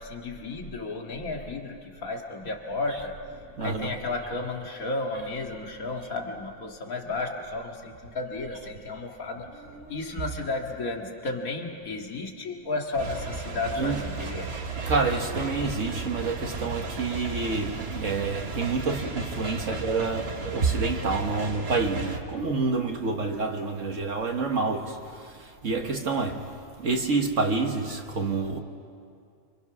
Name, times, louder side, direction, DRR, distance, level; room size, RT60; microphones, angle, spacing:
voice 1, 0.0-3.1 3.6-9.6 9.9-14.5 19.7-19.8, left 3 dB, 85° left, 2.3 m, -33 dB
voice 2, 3.6-4.0 9.7-10.0 13.8-14.0 14.9-28.6, right 4 dB, 65° right, 1.6 m, -28 dB
sound 1, 13.0-22.2, right 3 dB, 50° right, 1.7 m, -35 dB
29.5 x 25.5 x 6.1 m
omnidirectional pair, 1.4 m